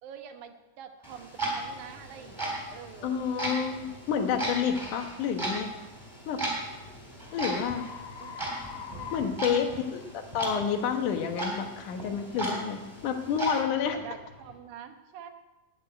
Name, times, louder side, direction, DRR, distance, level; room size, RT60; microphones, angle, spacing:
voice 1, 0.0-3.2 8.1-8.4 8.9-9.3 13.9-15.3, right 8 dB, 75° right, 6 dB, 2.5 m, -46 dB
Clock, 1.0-13.6, right 2 dB, 5° right, 3.9 m, -37 dB
sound 1, 1.4-1.5 2.0-2.2 2.8-3.0 5.7-10.2, left 6 dB, 65° left, 1.2 m, -45 dB
sound 2, 1.5-14.6, left 2 dB, 10° left, 3.2 m, -54 dB
voice 2, 3.0-5.7 6.3-6.5 7.3-7.9 9.1-14.0, left 7 dB, 80° left, 6 dB, 2.7 m, -29 dB
14.0 x 6.3 x 9.5 m, 1.1 s
omnidirectional pair, 3.5 m